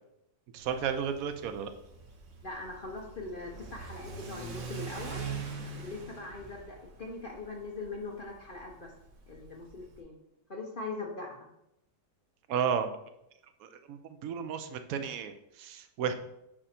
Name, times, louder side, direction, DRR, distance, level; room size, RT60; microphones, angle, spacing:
voice 1, 0.5-1.7 12.5-12.9 13.6-16.1, right 7 dB, 65° right, 8 dB, 0.9 m, -33 dB
Car / Accelerating revving vroom, 0.6-10.0, right 4 dB, 80° right, 1.8 m, -43 dB
voice 2, 2.4-5.3 5.8-8.9 9.3-10.2 10.5-11.5, left 3 dB, 50° left, 0 dB, 0.6 m, -41 dB
7.5 x 5.0 x 4.3 m, 0.85 s
omnidirectional pair, 2.0 m